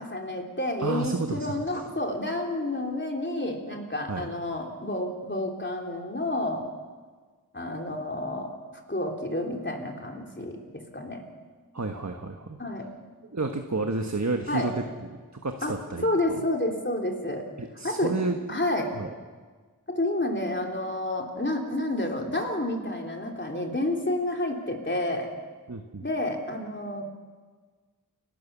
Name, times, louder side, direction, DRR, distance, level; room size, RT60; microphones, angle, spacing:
voice 1, 0.0-6.7 7.5-8.6 8.9-11.2 12.6-12.9 14.5-14.7 15.6-15.7 16.0-17.5 17.8-18.1 18.5-18.9 19.9-25.3 26.0-27.0, left 1 dB, 30° left, 1 dB, 3.4 m, -30 dB
voice 2, 0.8-1.8 4.1-4.3 11.7-12.6 13.3-14.8 15.4-16.4 17.6-18.4 19.0-19.1 25.7-26.1, right 3 dB, 50° right, 5 dB, 1.3 m, -31 dB
29.0 x 12.5 x 7.3 m, 1.4 s
wide cardioid pair, 45°, 36 cm